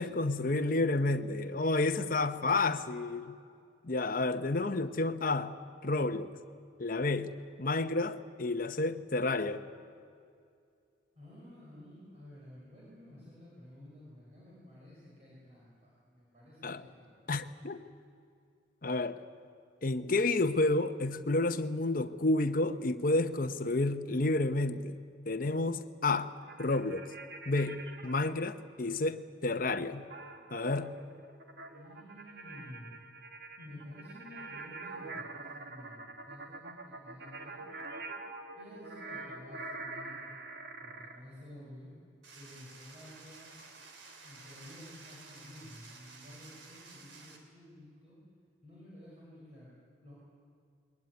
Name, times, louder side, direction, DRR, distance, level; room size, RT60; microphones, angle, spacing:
voice 1, 0.0-3.4 3.8-5.6 5.8-6.3 6.8-9.6 16.6-16.8 17.3-17.8 18.8-19.2 19.8-25.0 25.3-26.3 26.6-27.1 27.5-30.1 30.5-31.0, left 2 dB, 50° left, 0.9 m, -30 dB
voice 2, 11.1-17.3 31.7-32.9 33.6-37.6 38.5-40.3 40.8-41.9 42.3-43.5 44.2-48.2 48.6-50.1, left 1 dB, 35° right, 6.1 m, -52 dB
sound 1, 26.4-28.5 30.1-41.2, right 3 dB, 60° right, 1.9 m, -45 dB
sound 2, 42.2-47.4, right 3 dB, 80° right, 3.3 m, -53 dB
22.0 x 19.5 x 9.6 m
head